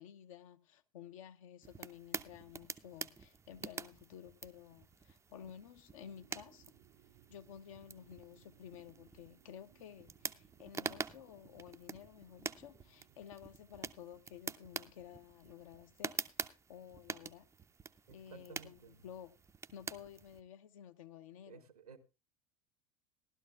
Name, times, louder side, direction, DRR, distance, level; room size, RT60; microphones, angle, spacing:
voice 1, 0.0-6.7 7.3-17.5 18.1-19.3 19.7-21.7, left 9 dB, 65° left, 0.9 m, -53 dB
sound 1, 1.6-20.4, right 5 dB, 15° right, 0.5 m, -47 dB
sound 2, 6.0-13.2, right 13 dB, 55° right, 0.7 m, -67 dB
voice 2, 18.1-19.0 21.5-22.0, right 6 dB, 80° right, 1.2 m, -55 dB
18.5 x 12.0 x 2.3 m
figure-of-eight pair, 75°, 19 cm